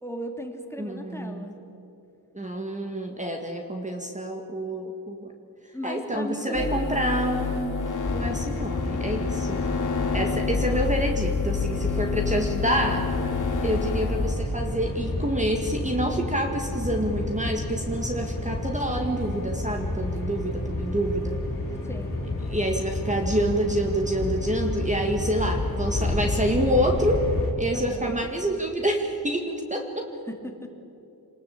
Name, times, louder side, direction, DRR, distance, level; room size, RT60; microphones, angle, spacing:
voice 1, 0.0-1.6 5.7-7.2 21.8-22.2 27.7-28.3 30.3-30.7, equal, 5° left, 3 dB, 2.6 m, -36 dB
voice 2, 0.8-1.5 2.3-5.3 5.8-7.8 8.1-9.6 10.1-13.1 13.6-21.4 22.5-27.3 27.6-30.1, right 1 dB, 20° right, 3 dB, 1.9 m, -27 dB
sound 1, 6.5-14.4, left 5 dB, 50° left, 3.4 m, -28 dB
sound 2, 8.0-27.5, left 2 dB, 35° left, 5.3 m, -30 dB
27.0 x 20.0 x 8.7 m, 2.8 s
wide cardioid pair, 140°, 38 cm